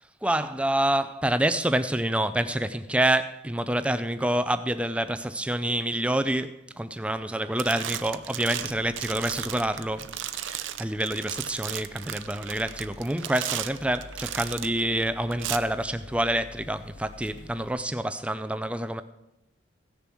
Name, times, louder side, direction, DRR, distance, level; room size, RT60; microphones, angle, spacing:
voice 1, 0.2-19.0, right 1 dB, 5° right, 0.4 m, -27 dB
sound 1, 7.2-7.3 7.6-14.8 15.3-15.6, right 11 dB, 80° right, 0.6 m, -35 dB
sound 2, 8.6-17.8, left 2 dB, 65° left, 0.7 m, -49 dB
16.5 x 6.9 x 6.2 m
head